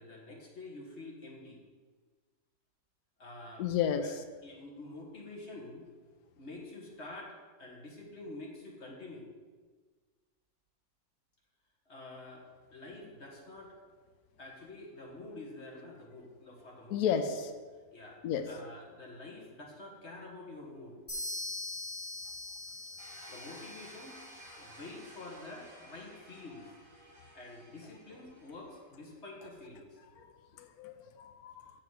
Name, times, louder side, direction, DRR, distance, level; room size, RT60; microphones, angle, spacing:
voice 1, 0.0-1.6 3.2-3.7 4.4-5.9 6.4-9.3 11.9-13.7 14.4-17.2 17.9-18.2 18.5-21.0 23.3-24.2 24.6-26.7 27.3-30.0, left 2 dB, 45° left, -1 dB, 1.8 m, -48 dB
voice 2, 3.6-4.2 16.9-17.5 18.2-18.5 30.2-30.3 30.6-31.7, left 8 dB, 75° left, 7 dB, 1.1 m, -32 dB
sound 1, 21.1-24.8, left 2 dB, 10° left, 2.6 m, -42 dB
sound 2, 23.0-28.9, right 1 dB, 20° right, 2.1 m, -54 dB
7.6 x 6.9 x 4.9 m, 1.4 s
omnidirectional pair, 1.7 m